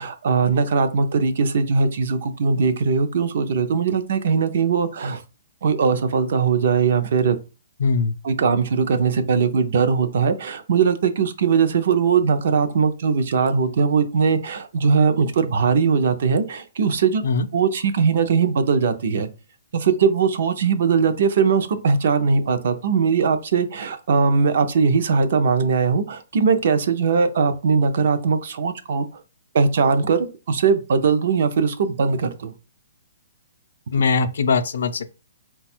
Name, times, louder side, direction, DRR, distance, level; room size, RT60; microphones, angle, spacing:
voice 1, 0.0-5.2 5.6-7.4 8.2-17.2 17.5-19.3 19.7-29.1 29.5-32.5, right 5 dB, 55° right, 0.5 m, -20 dB
voice 2, 7.8-8.1 17.2-17.5 33.9-35.1, left 4 dB, 70° left, 0.4 m, -21 dB
4.0 x 2.3 x 4.3 m
hypercardioid pair, 170°, 0 cm